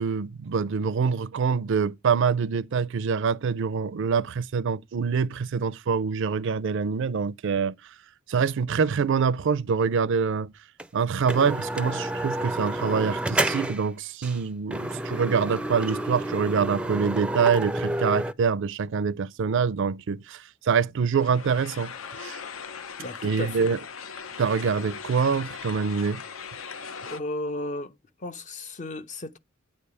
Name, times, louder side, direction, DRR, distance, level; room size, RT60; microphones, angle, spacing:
voice 1, 0.0-7.7 8.3-10.5 10.9-21.9 22.2-22.4 23.2-23.8 24.4-26.2, right 6 dB, 65° right, 0.4 m, -25 dB
sound 1, 10.8-10.9 11.3-13.9 14.2-14.4 14.7-18.3, right 1 dB, 5° right, 0.4 m, -29 dB
sound 2, 21.1-27.2, left 6 dB, 75° left, 0.6 m, -39 dB
voice 2, 23.0-23.7 27.1-27.9 28.2-29.4, left 1 dB, 40° left, 0.6 m, -34 dB
9.0 x 3.4 x 6.8 m
head